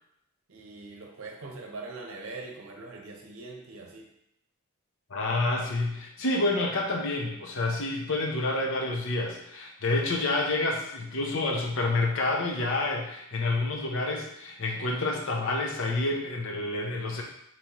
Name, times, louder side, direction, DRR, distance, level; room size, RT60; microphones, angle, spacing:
voice 1, 0.5-4.1, right 3 dB, 65° right, 1 dB, 0.7 m, -42 dB
voice 2, 5.1-17.2, left 2 dB, 60° left, 0 dB, 0.8 m, -28 dB
5.2 x 3.0 x 3.0 m, 0.78 s
head